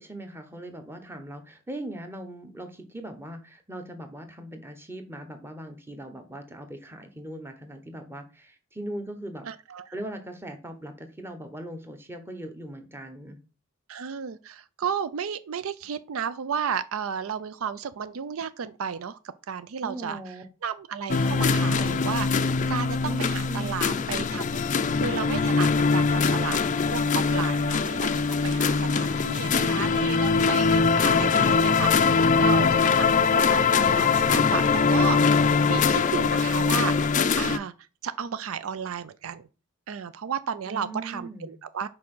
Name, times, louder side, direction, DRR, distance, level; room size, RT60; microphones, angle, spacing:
voice 1, 0.0-9.5 9.9-13.4 19.8-20.4 23.0-23.9 40.7-41.6, right 1 dB, 10° right, 1.2 m, -39 dB
voice 2, 9.4-9.9 13.9-19.2 19.5-20.2 20.6-26.6 26.9-35.2 35.7-37.7 38.0-39.4 39.9-41.9, right 7 dB, 70° right, 0.4 m, -33 dB
sound 1, 21.1-37.6, left 5 dB, 35° left, 0.4 m, -22 dB
6.0 x 4.8 x 6.1 m
head